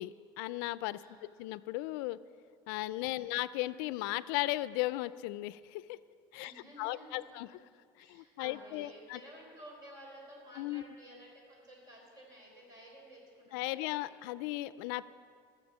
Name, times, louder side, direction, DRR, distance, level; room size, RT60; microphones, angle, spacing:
voice 1, 0.0-1.0 1.4-2.2 2.7-6.0 6.3-6.5 6.8-7.5 8.1-9.2 10.6-10.8 13.5-15.1, left 17 dB, 80° left, 17 dB, 0.4 m, -36 dB
voice 2, 1.0-1.3 3.0-3.3 6.4-7.5 8.0-14.1, equal, 35° right, -1 dB, 4.1 m, -54 dB
15.5 x 6.9 x 7.2 m, 2.2 s
cardioid pair, 155°, 11 cm